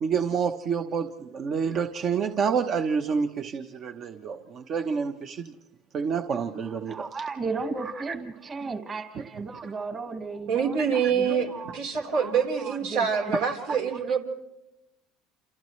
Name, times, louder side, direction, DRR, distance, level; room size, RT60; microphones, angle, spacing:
voice 1, 0.0-5.5 5.9-7.2 8.1-8.2 9.1-9.2 11.2-11.3 12.0-12.1, right 6 dB, 45° right, 6 dB, 1.0 m, -28 dB
voice 2, 6.7-11.8 12.1-13.6, right 4 dB, 30° right, 6 dB, 1.8 m, -36 dB
voice 3, 10.5-11.5 11.7-14.2, right 6 dB, 85° right, 1 dB, 4.0 m, -25 dB
29.0 x 28.0 x 3.2 m, 0.93 s
supercardioid pair, 100°, 0 cm